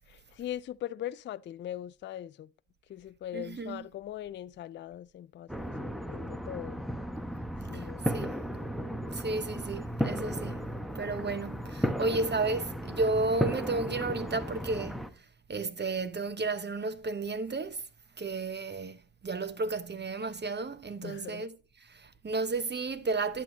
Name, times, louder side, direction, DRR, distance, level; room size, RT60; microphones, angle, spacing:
voice 1, 0.1-2.5 2.9-6.9 7.7-8.4 21.0-21.5, left 11 dB, 30° left, 0.4 m, -41 dB
voice 2, 3.3-3.8 7.7-8.4 9.1-10.6 10.9-15.0 15.5-17.9 18.2-21.5 21.8-23.4, right 3 dB, 25° right, 1.1 m, -33 dB
sound 1, 5.5-15.1, equal, ahead, 1.0 m, -35 dB
10.5 x 7.3 x 2.7 m
hypercardioid pair, 50°, 43 cm